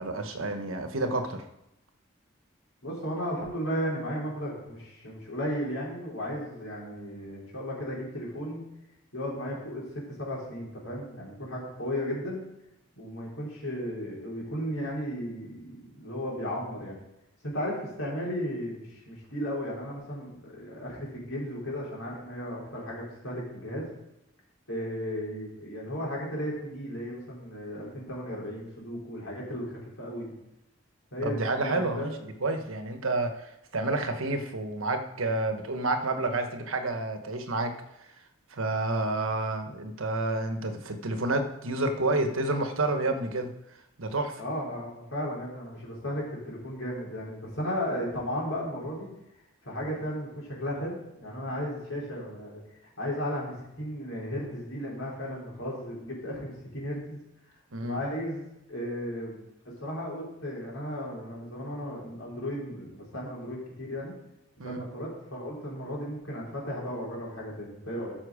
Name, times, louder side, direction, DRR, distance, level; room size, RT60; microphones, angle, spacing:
voice 1, 0.0-1.4 31.2-37.7 38.5-43.5 44.0-44.4 57.7-58.0 64.6-64.8, right 2 dB, 85° right, 7 dB, 1.2 m, -29 dB
voice 2, 2.8-8.6 9.1-12.4 13.0-17.0 17.4-23.9 24.7-30.3 31.1-32.1 44.4-49.1 49.6-52.6 53.0-57.2 57.8-59.4 59.8-64.1 64.6-68.1, equal, 85° left, -4 dB, 4.2 m, -35 dB
13.0 x 6.0 x 5.0 m, 0.87 s
head